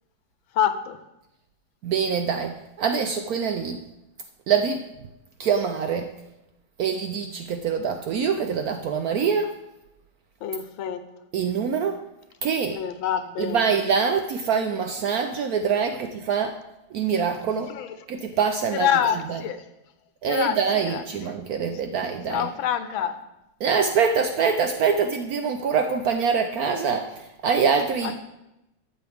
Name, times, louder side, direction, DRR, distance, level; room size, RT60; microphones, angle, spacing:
voice 1, 0.5-1.0 10.4-11.0 12.7-13.6 17.7-18.0 18.7-19.6 20.3-21.0 22.3-23.2 28.0-28.2, left 9 dB, 90° left, 10 dB, 1.5 m, -26 dB
voice 2, 1.8-3.8 4.5-4.8 5.4-6.1 6.8-9.6 11.3-12.0 12.4-12.8 13.4-16.6 16.9-17.7 18.1-18.9 19.3-19.4 20.2-22.5 23.6-28.1, right 6 dB, 75° right, 6 dB, 0.8 m, -24 dB
13.0 x 7.7 x 3.4 m, 0.91 s
omnidirectional pair, 2.1 m